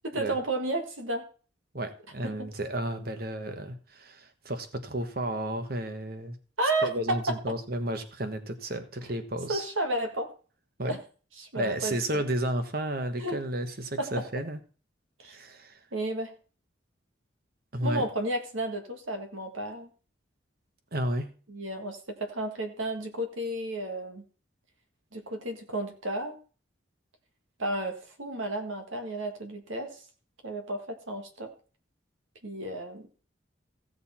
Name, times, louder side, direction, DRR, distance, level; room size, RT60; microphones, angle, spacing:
voice 1, 0.0-1.2 2.4-2.5 6.6-7.5 9.5-10.3 10.9-11.0 11.4-12.2 13.2-13.4 14.0-14.2 15.2-15.3 15.9-16.3 17.8-19.9 21.5-24.2 25.1-26.4 27.6-30.0 30.4-31.5 32.4-33.1, right 1 dB, 85° right, 6 dB, 1.6 m, -32 dB
voice 2, 1.7-6.4 6.8-9.6 10.8-11.0 11.5-14.6 15.3-15.8 17.7-18.0 20.9-21.3, right 1 dB, 50° right, 9 dB, 1.2 m, -32 dB
15.5 x 6.7 x 4.3 m, 0.38 s
head